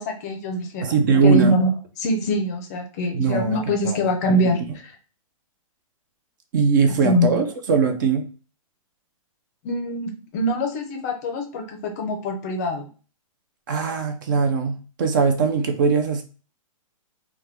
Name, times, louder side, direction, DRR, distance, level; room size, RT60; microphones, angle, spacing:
voice 1, 0.0-0.9 1.2-4.9 7.0-7.3 9.6-12.8, left 1 dB, 30° left, 0.5 m, -24 dB
voice 2, 0.8-1.6 3.1-3.6 3.8-4.0 4.2-4.4 6.5-8.3 13.7-16.2, right 5 dB, 35° right, 0.4 m, -20 dB
3.4 x 2.2 x 3.0 m
hypercardioid pair, 165°, 18 cm